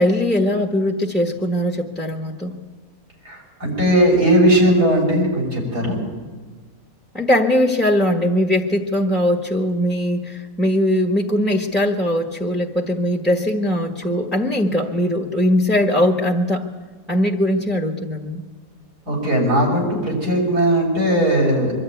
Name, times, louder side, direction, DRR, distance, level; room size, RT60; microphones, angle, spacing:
voice 1, 0.0-2.5 7.1-16.7 17.1-18.4, left 1 dB, ahead, 0 dB, 1.3 m, -20 dB
voice 2, 3.2-6.0 19.1-21.7, right 1 dB, 75° right, -3 dB, 6.8 m, -18 dB
24.0 x 12.0 x 9.2 m, 1.4 s
omnidirectional pair, 1.7 m